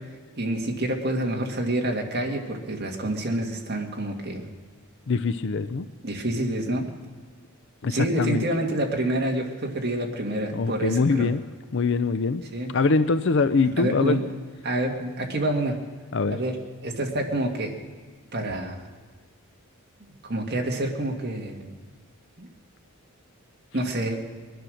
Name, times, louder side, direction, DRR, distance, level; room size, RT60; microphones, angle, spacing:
voice 1, 0.4-4.4 6.0-6.9 7.9-11.3 12.5-12.7 13.8-14.2 14.6-15.8 16.3-16.6 16.8-17.8 18.3-18.8 20.2-21.7 22.4-22.5 23.7-24.2, right 1 dB, 45° right, 1 dB, 2.0 m, -27 dB
voice 2, 5.1-5.9 7.8-8.4 10.5-11.4 11.7-12.4 12.7-14.2 16.1-16.4, left 4 dB, 55° left, 11 dB, 0.5 m, -23 dB
22.0 x 10.0 x 6.4 m, 1.5 s
head